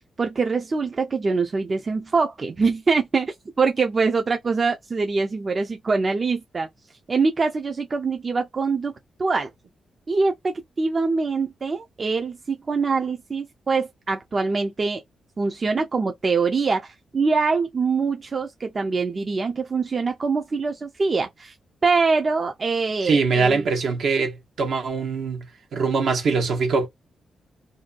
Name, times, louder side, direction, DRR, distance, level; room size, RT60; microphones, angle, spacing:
voice 1, 0.2-6.7 7.1-8.9 9.2-9.5 10.1-15.0 15.4-21.5 21.8-23.6, right 4 dB, 40° right, 0.5 m, -24 dB
voice 2, 23.0-25.5 25.7-26.9, right 4 dB, 75° right, 0.8 m, -22 dB
2.6 x 2.2 x 2.4 m
cardioid pair, 70°, 0 cm